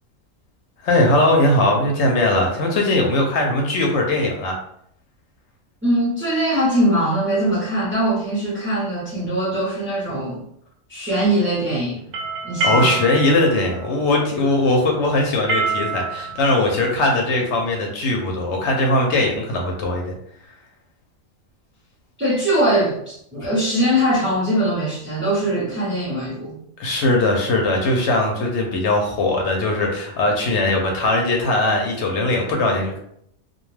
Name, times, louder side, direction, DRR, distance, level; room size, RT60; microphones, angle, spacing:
voice 1, 0.8-4.5 12.6-20.1 26.8-33.0, left 2 dB, 65° left, 1 dB, 0.8 m, -20 dB
voice 2, 5.8-10.4 10.9-12.0 12.4-13.0 22.2-26.6, right 1 dB, 15° right, -9 dB, 0.5 m, -21 dB
sound 1, 12.0-17.7, right 4 dB, 80° right, 1.0 m, -27 dB
2.3 x 2.2 x 3.1 m, 0.71 s
omnidirectional pair, 1.4 m